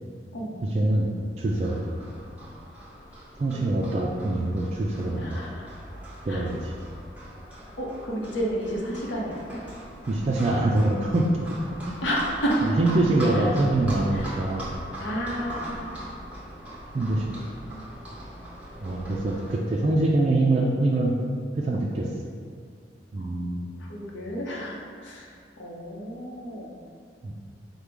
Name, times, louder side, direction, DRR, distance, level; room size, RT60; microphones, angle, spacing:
voice 1, 0.6-1.1 1.4-1.8 3.4-5.4 6.3-6.6 10.1-11.3 11.9-12.0 12.8-14.7 16.9-17.3 18.8-21.1 21.6-22.1 23.1-23.7 27.2-27.3, right 2 dB, 35° right, -3 dB, 0.3 m, -24 dB
Livestock farm animals working animals, 1.5-19.6, equal, 10° right, 0.9 m, -40 dB
voice 2, 5.2-5.7 6.3-6.5 7.8-9.6 12.0-12.7 13.3-13.5 14.1-14.4 15.0-16.3 23.2-23.3 23.8-26.8, equal, 85° left, -3 dB, 0.8 m, -31 dB
5.1 x 2.2 x 4.5 m, 2.1 s
head